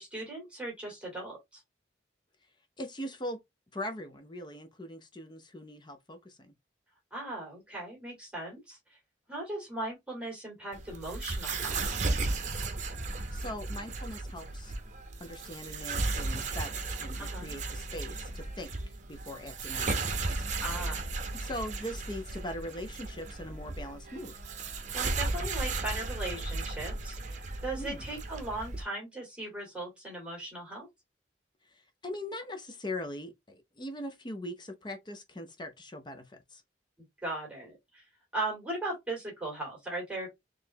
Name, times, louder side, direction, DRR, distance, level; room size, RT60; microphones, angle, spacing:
voice 1, 0.0-1.6 7.1-9.0 9.3-12.0 17.2-17.6 20.6-21.0 24.9-30.9 37.2-38.0 38.3-40.3, right 2 dB, 5° right, 2.0 m, -38 dB
voice 2, 2.8-3.4 3.7-6.5 13.3-14.7 15.2-18.7 19.1-20.4 21.3-24.3 27.7-28.1 31.7-36.6, left 1 dB, 25° left, 0.6 m, -41 dB
sound 1, 10.7-28.8, right 3 dB, 40° right, 0.8 m, -35 dB
4.2 x 3.2 x 2.7 m
head